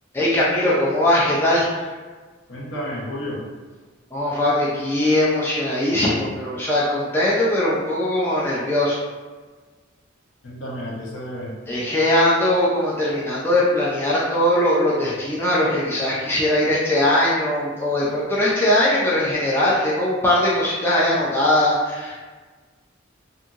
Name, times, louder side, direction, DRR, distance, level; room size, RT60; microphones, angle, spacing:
voice 1, 0.1-1.7 4.1-9.0 11.7-22.1, left 1 dB, 10° left, -7 dB, 0.4 m, -20 dB
voice 2, 2.5-3.4 10.4-11.6, equal, 65° left, -5 dB, 0.9 m, -31 dB
2.8 x 2.6 x 2.4 m, 1.4 s
head